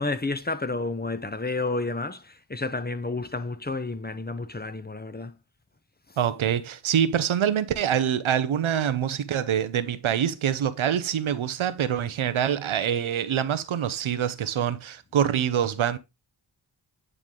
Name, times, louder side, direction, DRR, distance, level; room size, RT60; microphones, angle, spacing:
voice 1, 0.0-5.4 6.1-6.2, left 3 dB, 20° left, 0.8 m, -30 dB
voice 2, 6.2-16.0, right 9 dB, 85° right, 0.7 m, -25 dB
9.8 x 3.3 x 3.7 m
cardioid pair, 40°, 47 cm